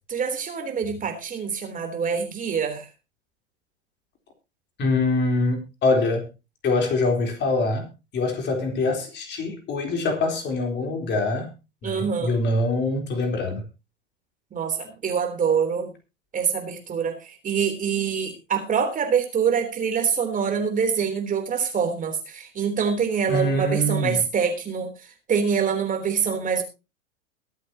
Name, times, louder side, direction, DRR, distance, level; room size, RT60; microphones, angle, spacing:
voice 1, 0.1-2.9 11.8-12.3 14.5-15.9 16.3-24.9 25.3-26.6, right 6 dB, 20° right, 5 dB, 3.4 m, -25 dB
voice 2, 4.8-6.3 6.6-11.5 11.8-13.6 23.3-24.2, left 2 dB, 30° left, 3 dB, 3.8 m, -24 dB
22.5 x 8.2 x 2.9 m, 0.28 s
hypercardioid pair, 105°, 37 cm